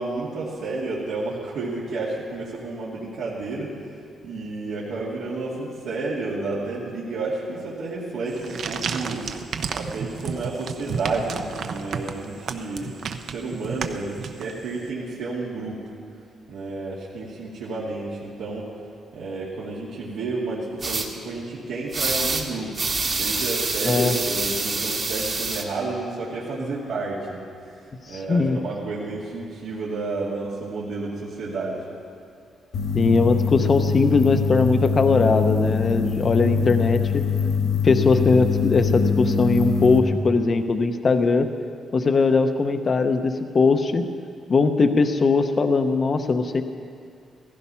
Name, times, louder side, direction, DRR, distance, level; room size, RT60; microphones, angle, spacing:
voice 1, 0.0-4.0 4.2-9.3 9.7-12.9 13.2-15.9 16.5-18.7 19.1-22.7 23.2-24.0 24.2-27.8 28.1-31.8, right 3 dB, 80° right, -7 dB, 2.4 m, -31 dB
sound 1, 8.3-14.8, right 6 dB, 55° right, 0.7 m, -32 dB
sound 2, 20.8-21.1 21.9-22.4 22.7-25.6, right 3 dB, 30° right, 1.3 m, -26 dB
voice 2, 23.9-24.2 28.0-28.6 32.9-37.2 37.8-41.5 41.9-44.0 44.5-46.6, left 4 dB, 30° left, 8 dB, 0.7 m, -20 dB
sound 3, 32.7-40.0, left 5 dB, 80° left, 1.7 m, -23 dB
15.5 x 15.5 x 5.6 m, 2.3 s
cardioid pair, 160°, 0 cm